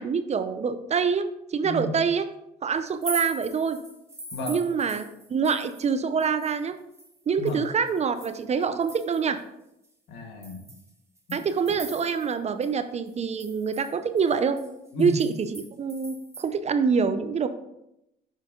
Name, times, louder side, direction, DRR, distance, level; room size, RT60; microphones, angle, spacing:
voice 1, 0.0-2.2 2.6-3.8 4.5-6.7 7.3-9.4 11.3-14.6 15.0-17.5, right 6 dB, 35° right, 10 dB, 0.6 m, -26 dB
sound 1, 2.9-5.9 6.2-9.4 9.8-9.9 10.4-12.4 12.6-12.7 13.1-16.5, right 2 dB, 15° right, 1.8 m, -42 dB
voice 2, 10.1-10.6 11.3-11.4 14.9-15.2, left 2 dB, 70° left, 3 dB, 1.6 m, -32 dB
6.4 x 5.2 x 3.7 m, 0.84 s
supercardioid pair, 80°, 19 cm